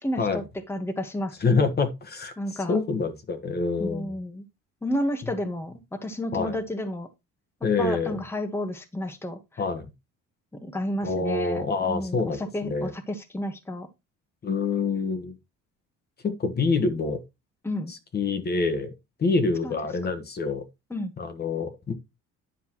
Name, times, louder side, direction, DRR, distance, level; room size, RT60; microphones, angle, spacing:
voice 1, 0.0-1.4 2.4-2.8 3.8-4.4 4.8-5.7 6.0-7.1 7.8-9.4 10.5-13.9 17.6-17.9 19.6-19.7 20.9-21.1, left 1 dB, 10° left, 1.3 m, -31 dB
voice 2, 1.4-4.1 6.3-6.6 7.6-8.2 9.6-9.9 11.0-12.9 14.4-15.4 16.2-17.2 17.9-18.9 19.2-20.6 21.2-21.9, left 4 dB, 30° left, 1.4 m, -26 dB
10.0 x 6.8 x 3.0 m
cardioid pair, 130°, 31 cm